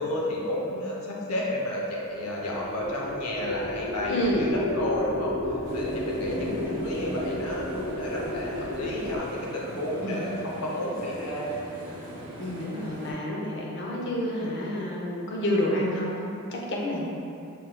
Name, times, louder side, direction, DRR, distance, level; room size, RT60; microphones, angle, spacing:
voice 1, 0.0-5.3 5.7-6.5 6.8-11.5 11.9-12.0, left 1 dB, 85° left, -3 dB, 0.7 m, -31 dB
sound 1, 2.1-9.2, left 1 dB, 40° right, 0.7 m, -33 dB
voice 2, 4.1-4.5 6.3-7.1 10.0-10.2 12.4-17.1, left 1 dB, 55° left, -2 dB, 0.5 m, -29 dB
sound 2, 5.6-13.1, right 1 dB, 80° right, 0.6 m, -41 dB
3.8 x 3.8 x 2.2 m, 2.6 s
head